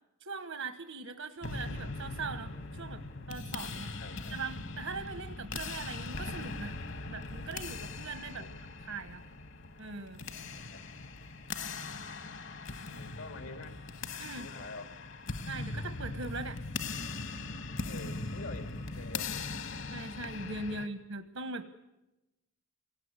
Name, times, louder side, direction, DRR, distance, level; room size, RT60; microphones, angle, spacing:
voice 1, 0.2-3.9 4.3-6.7 7.1-8.4 8.9-9.2 9.8-10.2 14.2-14.5 15.5-16.6 19.9-21.7, right 3 dB, 85° right, 8 dB, 1.3 m, -41 dB
sound 1, 1.4-20.9, left 3 dB, 60° left, 1.3 m, -40 dB
voice 2, 3.7-4.4 8.3-8.6 10.5-10.8 12.9-13.7 14.4-14.9 17.9-19.4 20.6-20.9, left 3 dB, 85° left, 6 dB, 2.4 m, -47 dB
29.0 x 18.5 x 9.7 m, 1.0 s
head